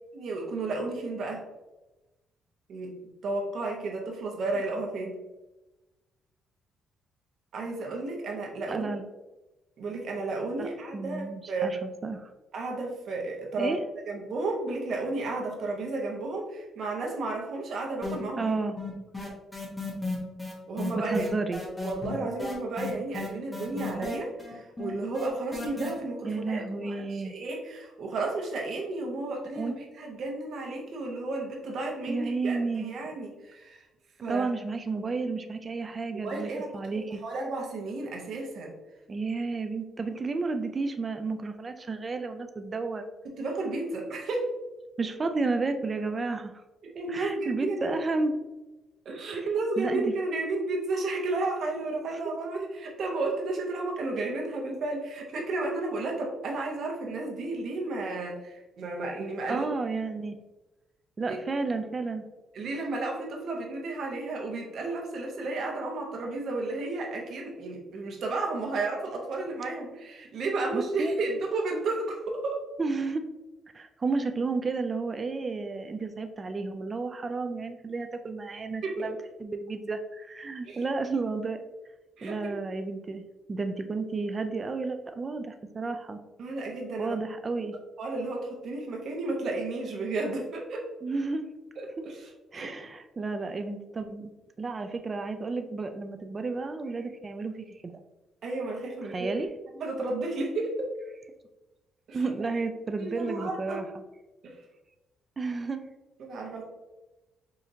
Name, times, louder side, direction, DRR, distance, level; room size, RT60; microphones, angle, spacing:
voice 1, 0.1-1.5 2.7-3.0 3.2-5.2 7.5-8.9 9.8-11.7 12.5-13.8 14.1-18.4 20.7-21.3 21.8-33.8 34.2-34.5 36.1-36.7 37.2-38.7 43.4-44.5 46.8-48.0 49.0-59.7 61.3-61.4 62.5-72.6 78.8-79.0 80.6-80.8 82.2-82.7 86.4-87.1 88.0-90.9 91.8-92.7 98.4-99.3 99.7-100.9 102.1-102.2 103.0-103.8 104.4-104.6 106.2-106.6, right 2 dB, 60° right, 0 dB, 1.0 m, -32 dB
voice 2, 8.7-9.0 10.6-10.7 10.9-12.3 13.6-13.8 18.4-18.7 21.0-21.6 26.2-27.4 29.6-29.7 32.1-32.9 34.3-37.2 39.1-43.0 45.0-46.5 47.1-48.3 49.3-49.5 49.8-50.0 52.1-52.2 59.5-60.4 61.2-62.2 70.7-71.1 72.8-73.2 73.7-81.6 82.2-86.2 87.0-87.7 91.0-91.5 92.0-92.1 92.5-94.3 94.6-97.9 99.1-99.5 102.1-103.9 105.4-105.8, right 3 dB, 30° right, 7 dB, 0.3 m, -32 dB
sound 1, 18.0-18.5 18.8-25.9, left 3 dB, 15° left, 1.1 m, -34 dB
4.9 x 2.7 x 2.7 m, 1.1 s
cardioid pair, 115°, 0 cm